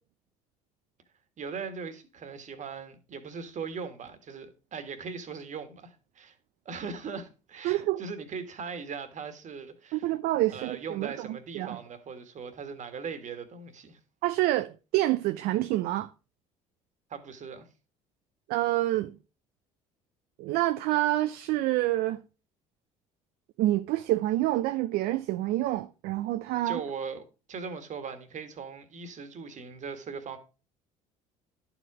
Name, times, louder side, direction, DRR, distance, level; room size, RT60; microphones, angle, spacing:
voice 1, 1.4-6.4 6.6-10.1 10.5-14.0 17.1-17.7 26.6-30.4, right 5 dB, 45° right, 1.7 m, -39 dB
voice 2, 7.6-8.0 9.9-11.3 11.5-11.8 14.2-16.1 18.5-19.1 20.4-22.2 23.6-26.8, right 16 dB, 60° right, 0.5 m, -27 dB
11.0 x 5.0 x 4.8 m
hypercardioid pair, 60°, 17 cm